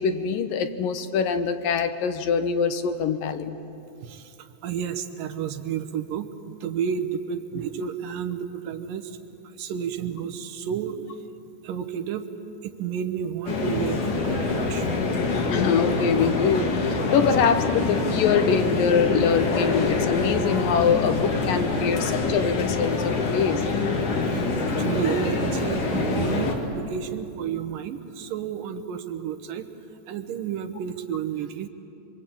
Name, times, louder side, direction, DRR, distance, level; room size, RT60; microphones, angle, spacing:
voice 1, 0.0-3.6 15.5-23.6, left 6 dB, 75° left, 8 dB, 2.7 m, -24 dB
voice 2, 4.0-9.2 9.6-11.2 11.6-12.3 12.6-14.9 24.2-29.7 30.1-31.7, right 8 dB, 75° right, 8 dB, 2.7 m, -31 dB
sound 1, 13.5-26.5, left 3 dB, 60° left, 3.7 m, -25 dB
25.5 x 25.0 x 8.7 m, 2.7 s
omnidirectional pair, 4.2 m